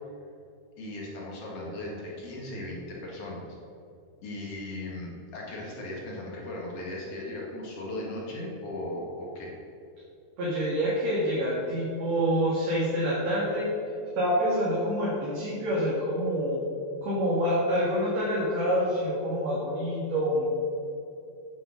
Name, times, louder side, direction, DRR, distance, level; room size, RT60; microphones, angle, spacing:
voice 1, 0.8-3.4 4.2-9.6, left 1 dB, 45° left, -3 dB, 2.3 m, -37 dB
voice 2, 10.4-13.7 14.2-16.6 17.0-20.5, equal, 50° right, -7 dB, 2.8 m, -27 dB
9.5 x 7.4 x 6.5 m, 2.6 s
omnidirectional pair, 4.7 m